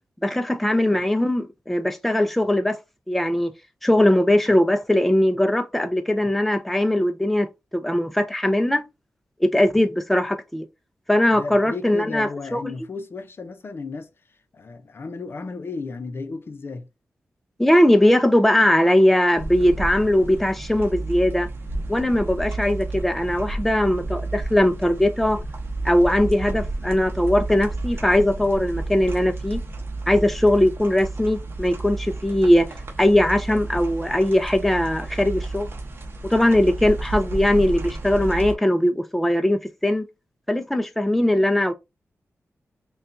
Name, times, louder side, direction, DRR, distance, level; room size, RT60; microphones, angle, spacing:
voice 1, 0.2-2.8 3.1-3.5 3.8-8.8 9.4-10.7 11.1-12.6 17.6-21.5 21.9-25.4 25.8-29.6 30.1-32.7 33.0-35.7 36.3-40.0 40.5-41.7, left 1 dB, 5° left, 0.4 m, -20 dB
voice 2, 11.3-14.1 14.5-16.9, left 4 dB, 50° left, 0.6 m, -34 dB
sound 1, 19.4-38.5, right 2 dB, 45° right, 0.8 m, -31 dB
5.2 x 2.3 x 2.5 m
wide cardioid pair, 120°, 5 cm